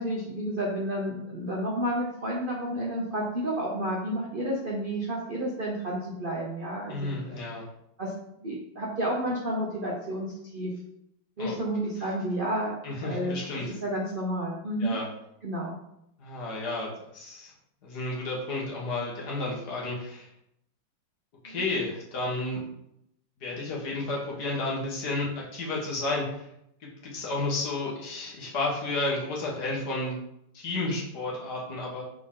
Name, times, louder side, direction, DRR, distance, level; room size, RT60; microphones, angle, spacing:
voice 1, 0.0-7.4 8.0-8.1 8.4-10.7 11.4-13.4 13.7-15.0 15.4-15.8 21.4-21.6, right 1 dB, 50° right, -3 dB, 0.6 m, -31 dB
voice 2, 6.9-7.6 11.4-11.5 12.8-13.7 14.8-15.0 16.2-17.5 17.8-20.3 21.4-22.6 23.4-26.4 27.0-30.2 30.5-32.0, left 2 dB, 55° left, -3 dB, 1.8 m, -32 dB
5.9 x 4.5 x 3.7 m, 0.78 s
omnidirectional pair, 2.2 m